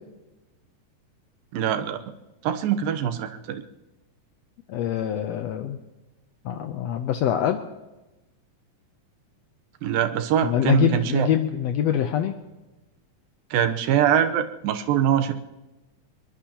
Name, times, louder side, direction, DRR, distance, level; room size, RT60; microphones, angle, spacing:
voice 1, 1.5-2.0 2.4-3.6 9.8-11.3 13.5-15.3, right 9 dB, 90° right, 8 dB, 2.7 m, -23 dB
voice 2, 4.7-5.8 6.4-7.6 10.4-12.3, left 10 dB, 85° left, 6 dB, 1.4 m, -24 dB
22.5 x 21.5 x 3.0 m, 1.1 s
omnidirectional pair, 3.9 m